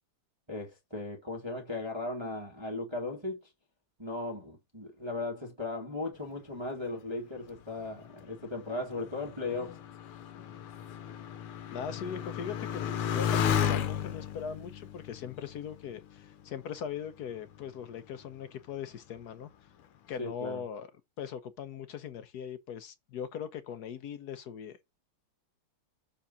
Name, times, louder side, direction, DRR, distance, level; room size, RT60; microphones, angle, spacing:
voice 1, 0.5-3.4 4.0-9.8 20.2-20.6, left 2 dB, 15° right, 1.8 m, -37 dB
Motorcycle, 7.6-16.6 17.3-17.9, left 9 dB, 85° left, 1.8 m, -34 dB
voice 2, 11.7-19.5 20.1-20.9 21.2-24.8, left 8 dB, 65° left, 1.0 m, -40 dB
7.1 x 3.8 x 5.4 m
omnidirectional pair, 2.4 m